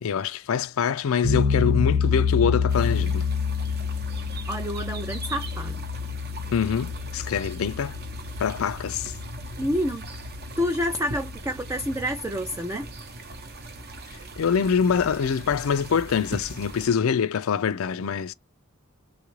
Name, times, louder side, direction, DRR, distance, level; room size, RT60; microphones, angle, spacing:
voice 1, 0.0-3.3 6.5-7.9 8.4-9.1 14.4-18.3, left 7 dB, 75° left, 0.4 m, -25 dB
sound 1, 1.2-12.1, left 5 dB, 85° right, 1.0 m, -28 dB
sound 2, 2.7-16.9, right 2 dB, 45° right, 0.6 m, -40 dB
voice 2, 4.5-5.8 9.6-10.1 10.6-12.9, equal, 15° right, 0.3 m, -28 dB
3.2 x 2.4 x 3.0 m
head